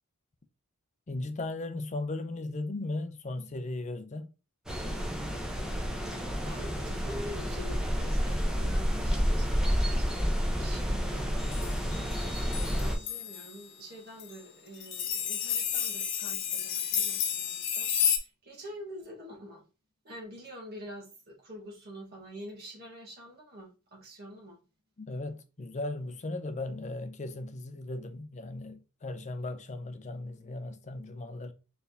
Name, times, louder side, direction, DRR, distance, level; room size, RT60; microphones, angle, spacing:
voice 1, 1.1-4.3 25.0-31.5, left 2 dB, 35° left, 0.5 m, -37 dB
sound 1, 4.7-13.0, equal, 5° right, 0.8 m, -30 dB
voice 2, 6.1-11.3 11.9-17.9 18.2-19.6 20.0-24.6, equal, 45° right, 1.4 m, -46 dB
sound 2, 11.4-13.6 14.2-14.4 14.8-18.2, left 8 dB, 55° left, 0.8 m, -32 dB
4.2 x 3.4 x 2.7 m
head